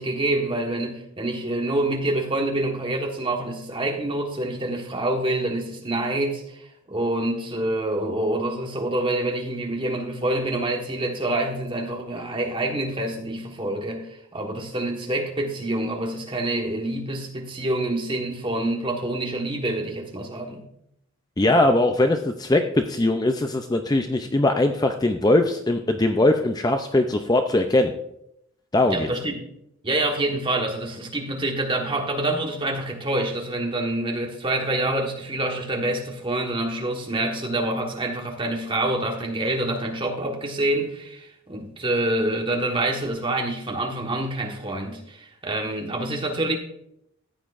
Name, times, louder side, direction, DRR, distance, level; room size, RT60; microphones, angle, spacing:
voice 1, 0.0-20.6 28.9-29.5 29.8-46.6, right 1 dB, 25° right, 1 dB, 1.4 m, -26 dB
voice 2, 21.4-27.9 28.7-29.1, left 2 dB, 20° left, 6 dB, 0.4 m, -21 dB
14.5 x 9.1 x 2.5 m, 0.76 s
head